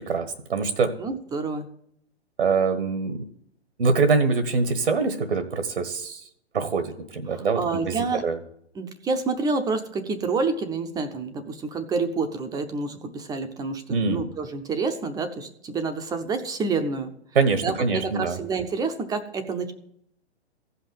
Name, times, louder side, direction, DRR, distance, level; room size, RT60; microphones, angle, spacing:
voice 1, 0.0-0.9 2.4-3.2 3.8-6.2 6.5-8.4 13.9-14.3 17.3-18.4, right 4 dB, 75° right, 9 dB, 1.4 m, -24 dB
voice 2, 1.0-1.7 7.3-8.2 8.7-17.1 17.6-19.7, right 4 dB, 10° right, 8 dB, 0.7 m, -28 dB
15.5 x 5.7 x 9.3 m, 0.72 s
figure-of-eight pair, 120°, 33 cm